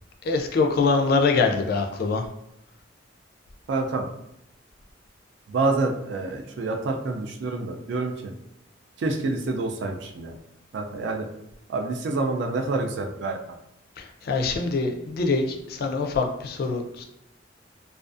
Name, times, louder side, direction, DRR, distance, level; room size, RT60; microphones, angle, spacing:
voice 1, 0.2-2.3 14.0-17.0, left 4 dB, 50° left, 4 dB, 0.3 m, -24 dB
voice 2, 3.7-4.1 5.5-8.3 9.0-10.3 10.7-11.3 11.7-13.4, right 3 dB, 65° right, 3 dB, 0.3 m, -27 dB
2.4 x 2.3 x 2.4 m, 0.82 s
head